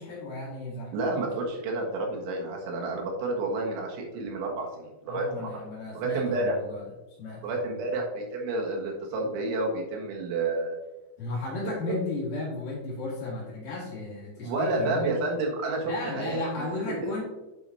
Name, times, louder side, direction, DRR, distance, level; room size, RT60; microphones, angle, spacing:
voice 1, 0.0-1.2 5.1-6.8 7.2-8.0 11.2-15.1 15.8-17.2, left 2 dB, 55° left, -5 dB, 2.9 m, -35 dB
voice 2, 0.9-5.5 6.0-6.6 7.4-10.8 11.9-12.0 14.4-16.4 16.8-17.1, right 2 dB, 80° right, 0 dB, 3.8 m, -30 dB
9.2 x 6.9 x 2.8 m, 1.1 s
omnidirectional pair, 5.5 m